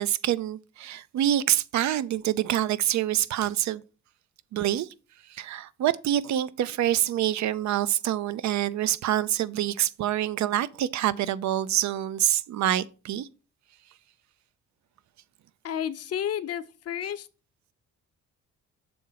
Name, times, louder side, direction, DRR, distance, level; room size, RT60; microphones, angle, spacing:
voice 1, 0.0-3.8 4.5-4.9 5.3-13.3, right 12 dB, 65° right, 0.6 m, -26 dB
voice 2, 15.6-17.3, left 9 dB, 55° left, 0.7 m, -31 dB
7.0 x 3.8 x 5.7 m
cardioid pair, 90°, 30 cm